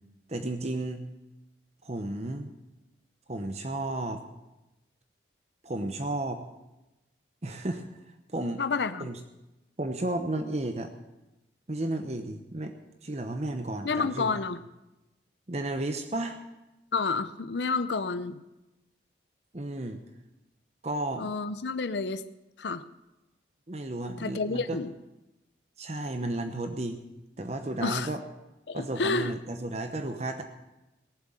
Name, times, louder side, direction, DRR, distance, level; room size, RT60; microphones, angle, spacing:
voice 1, 0.3-1.0 1.8-2.5 3.3-4.2 5.6-6.4 7.4-7.9 8.3-8.6 9.0-9.2 9.8-10.9 11.7-12.8 13.0-14.4 15.5-16.4 19.5-20.0 20.8-21.4 23.7-24.8 25.8-27.0 27.4-28.2 28.7-30.4, right 2 dB, 35° right, 6 dB, 0.9 m, -33 dB
voice 2, 8.6-9.1 13.8-14.6 16.9-18.4 21.2-22.2 22.6-22.8 24.2-24.9 27.8-28.1 28.7-29.3, left 4 dB, 70° left, 12 dB, 0.7 m, -29 dB
18.0 x 7.6 x 8.9 m, 0.99 s
head